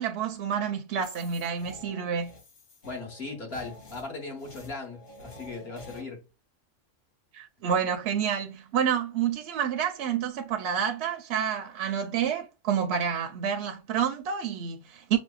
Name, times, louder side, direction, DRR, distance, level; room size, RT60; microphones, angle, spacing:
voice 1, 0.0-2.3 7.3-15.2, right 8 dB, 70° right, 0.8 m, -29 dB
sound 1, 0.9-6.0, left 2 dB, 85° left, 1.6 m, -49 dB
voice 2, 2.8-6.2, left 3 dB, 55° left, 1.5 m, -38 dB
6.0 x 2.1 x 2.3 m
omnidirectional pair, 1.3 m